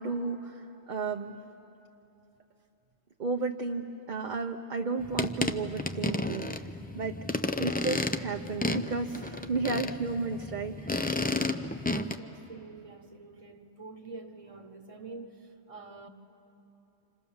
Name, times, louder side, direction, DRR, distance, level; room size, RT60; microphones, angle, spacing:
voice 1, 0.0-1.3 3.2-6.5 6.9-7.2 7.6-11.1, right 4 dB, 45° right, 3 dB, 0.9 m, -33 dB
sound 1, 5.0-12.1, left 2 dB, 10° left, 0.4 m, -32 dB
voice 2, 12.2-16.1, right 3 dB, 30° right, 7 dB, 1.3 m, -46 dB
29.5 x 26.5 x 7.1 m, 3.0 s
omnidirectional pair, 1.2 m